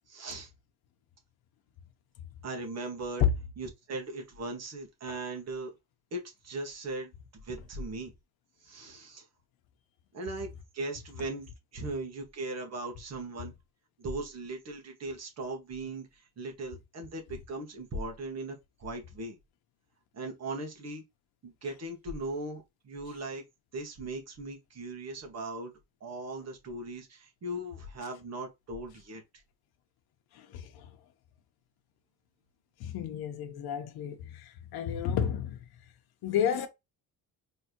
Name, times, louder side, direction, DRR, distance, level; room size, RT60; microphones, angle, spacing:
voice 1, 0.1-0.5 2.4-3.2 3.6-5.7 6.1-7.1 7.4-8.1 8.6-9.3 10.1-13.5 14.0-19.4 20.1-21.0 21.4-23.5 23.7-25.7 26.0-29.2, right 2 dB, 45° right, 1.8 m, -38 dB
voice 2, 30.3-30.9 32.8-35.6 36.2-36.7, left 9 dB, 80° left, 1.0 m, -31 dB
4.5 x 3.4 x 3.0 m
cardioid pair, 130°, 37 cm